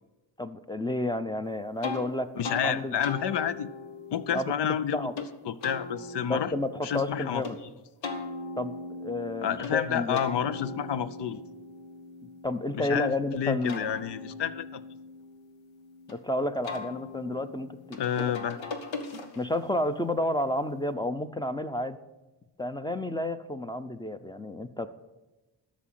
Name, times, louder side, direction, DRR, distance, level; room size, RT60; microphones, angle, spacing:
voice 1, 0.4-2.3 2.6-3.0 4.3-5.1 6.3-7.6 8.6-8.7 9.0-10.2 12.4-13.8 16.1-18.3 19.4-22.0 22.6-24.9, left 1 dB, 10° left, 11 dB, 0.6 m, -31 dB
sound 1, 1.8-2.0 2.4-2.7 3.0-5.3 5.6-7.5 8.0-9.7 10.2-13.0 13.5-16.1 16.6-19.7, left 3 dB, 80° left, 1.6 m, -40 dB
voice 2, 2.4-3.7 4.1-6.5 6.8-7.4 9.4-11.4 12.7-14.8 17.9-18.6, left 9 dB, 65° left, 14 dB, 0.7 m, -30 dB
12.5 x 6.3 x 7.5 m, 1.1 s
cardioid pair, 95°, 44 cm